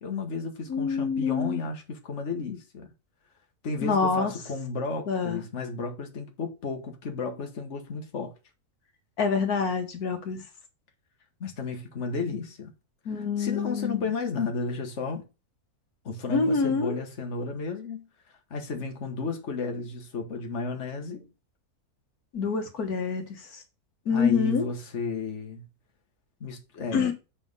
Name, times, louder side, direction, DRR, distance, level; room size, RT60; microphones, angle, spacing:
voice 1, 0.0-2.9 3.6-8.3 11.4-12.7 13.1-15.2 16.0-18.1 18.5-21.3 24.1-25.6 26.4-27.1, left 4 dB, 50° left, 1.6 m, -33 dB
voice 2, 0.7-1.6 3.8-4.3 5.1-5.4 9.2-10.4 13.1-14.0 16.3-17.0 22.3-23.6 24.1-24.7 26.9-27.1, left 5 dB, 80° left, 1.8 m, -26 dB
7.2 x 4.3 x 5.4 m
omnidirectional pair, 1.6 m